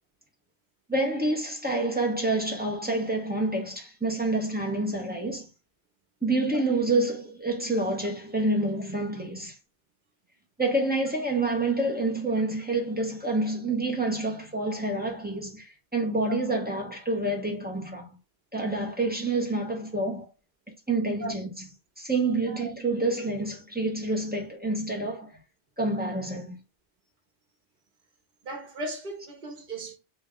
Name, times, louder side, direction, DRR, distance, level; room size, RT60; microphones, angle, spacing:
voice 1, 0.9-5.5 6.2-9.5 10.6-18.1 18.5-20.3 20.9-21.5 22.0-25.3 25.8-26.6, right 2 dB, 10° right, 0.8 m, -28 dB
voice 2, 28.4-30.0, right 1 dB, 55° right, 1.2 m, -37 dB
3.3 x 2.7 x 3.6 m
omnidirectional pair, 1.0 m